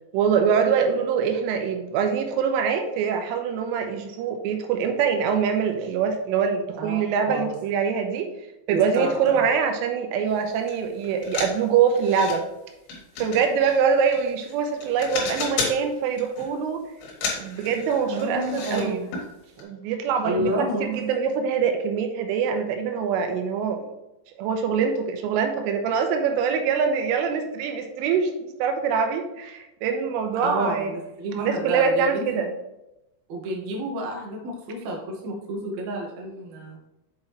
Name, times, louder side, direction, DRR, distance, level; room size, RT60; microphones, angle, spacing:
voice 1, 0.1-8.3 8.7-12.5 13.2-16.8 17.4-19.1 19.6-23.9 24.4-30.9 31.4-32.5, right 6 dB, 90° right, 5 dB, 3.3 m, -24 dB
voice 2, 6.8-7.5 8.7-9.4 18.1-19.1 20.2-20.9 30.4-32.4 33.3-36.8, right 1 dB, 75° right, -2 dB, 1.6 m, -30 dB
sound 1, 10.7-10.8 11.0-12.4 12.9-14.5 14.8-15.8 16.2-16.6 17.0-18.8 19.1-19.3 19.6-19.7, left 4 dB, 70° left, 3.7 m, -32 dB
7.7 x 5.6 x 3.1 m, 0.93 s
omnidirectional pair, 5.7 m